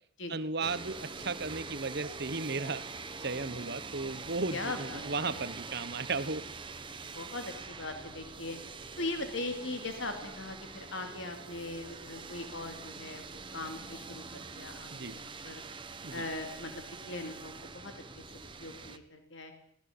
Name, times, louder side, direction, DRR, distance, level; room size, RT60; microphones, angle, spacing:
voice 1, 0.3-2.8 3.2-6.4 14.9-15.2 16.0-16.3, right 3 dB, 50° right, 14 dB, 1.2 m, -35 dB
sound 1, 0.6-19.0, right 4 dB, 25° right, 1.3 m, -44 dB
voice 2, 4.5-5.6 7.1-8.6 9.0-15.6 16.1-18.2 18.6-19.5, left 2 dB, 65° left, 5 dB, 2.8 m, -40 dB
22.0 x 18.0 x 8.6 m, 0.69 s
head